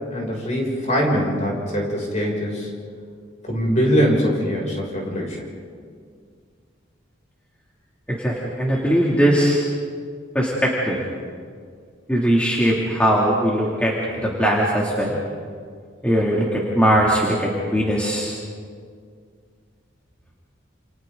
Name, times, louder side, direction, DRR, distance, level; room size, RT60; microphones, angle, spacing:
voice 1, 0.1-2.7 3.4-5.4, equal, 40° left, -2 dB, 6.4 m, -22 dB
voice 2, 8.1-9.6 10.3-11.0 12.1-15.2 16.0-18.3, equal, 5° left, -5 dB, 2.6 m, -20 dB
29.0 x 28.5 x 3.9 m, 2.1 s
head